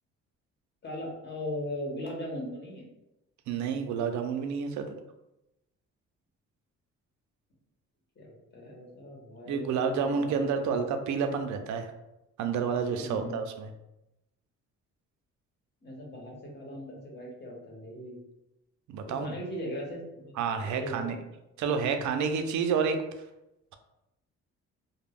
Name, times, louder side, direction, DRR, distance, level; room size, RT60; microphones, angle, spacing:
voice 1, 0.8-2.9 8.2-10.8 13.0-13.4 15.8-18.2 19.1-20.4 20.6-21.1, left 1 dB, 35° left, -2 dB, 1.0 m, -39 dB
voice 2, 3.5-4.9 9.5-11.9 12.4-13.7 18.9-19.3 20.4-21.2 21.6-23.0, right 6 dB, 70° right, 7 dB, 0.4 m, -29 dB
2.3 x 2.0 x 3.3 m, 0.91 s
cardioid pair, 90°, 30 cm